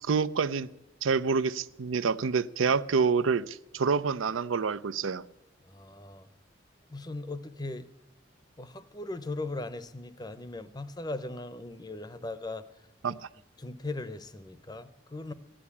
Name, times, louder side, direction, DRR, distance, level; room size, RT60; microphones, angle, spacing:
voice 1, 0.0-0.7 1.0-5.2 13.0-13.2, right 5 dB, 90° right, 0.5 m, -27 dB
voice 2, 5.7-6.3 6.9-7.9 8.6-12.6 13.6-15.3, left 2 dB, 20° left, 0.7 m, -38 dB
15.0 x 11.5 x 8.5 m
head